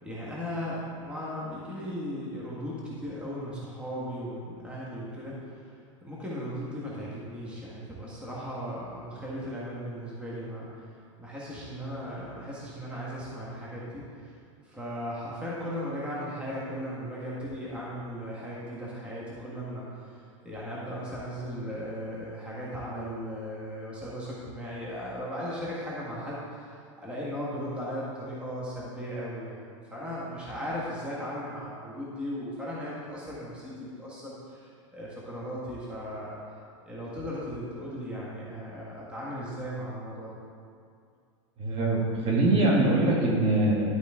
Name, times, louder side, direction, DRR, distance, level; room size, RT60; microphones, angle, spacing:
voice 1, 0.0-14.3 14.6-29.6 29.9-36.4 36.8-40.4, equal, 5° right, -7 dB, 1.5 m, -37 dB
voice 2, 41.6-43.9, right 2 dB, 35° right, -3 dB, 1.8 m, -23 dB
11.5 x 5.1 x 3.7 m, 2.3 s
supercardioid pair, 130°, 17 cm